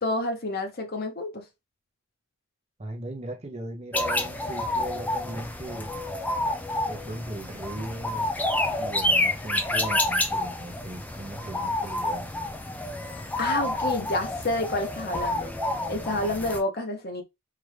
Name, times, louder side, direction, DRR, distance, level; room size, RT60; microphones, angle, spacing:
voice 1, 0.0-1.5 13.4-15.5 15.9-17.2, left 2 dB, 45° left, 0.9 m, -29 dB
voice 2, 2.8-6.0 6.9-8.3 8.8-12.3, right 1 dB, 30° right, 0.7 m, -38 dB
sound 1, 3.9-16.6, left 1 dB, 5° left, 0.3 m, -29 dB
4.6 x 2.5 x 3.3 m
head